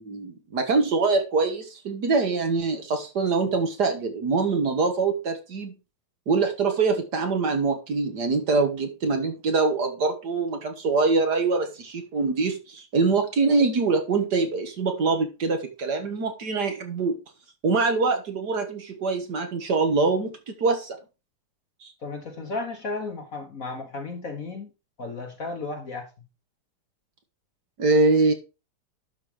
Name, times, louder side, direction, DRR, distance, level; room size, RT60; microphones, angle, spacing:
voice 1, 0.0-5.8 6.3-17.2 17.6-21.0 21.8-21.9 27.8-28.3, right 4 dB, 55° right, 1.8 m, -24 dB
voice 2, 22.0-24.7 25.0-26.1, left 3 dB, 45° left, 1.5 m, -34 dB
11.5 x 4.4 x 5.0 m
omnidirectional pair, 2.3 m